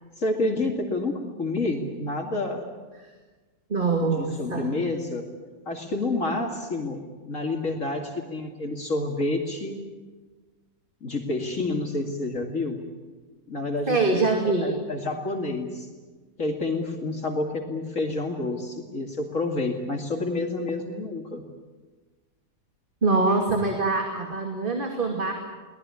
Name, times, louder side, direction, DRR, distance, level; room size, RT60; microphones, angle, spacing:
voice 1, 0.2-2.7 4.0-5.3 5.7-9.8 11.0-12.8 13.5-15.9 16.4-21.4, left 2 dB, 55° left, 2 dB, 2.8 m, -29 dB
voice 2, 3.7-4.8 13.9-14.7 23.0-25.3, right 3 dB, 35° right, 2 dB, 2.7 m, -24 dB
23.5 x 18.5 x 9.7 m, 1.3 s
omnidirectional pair, 1.6 m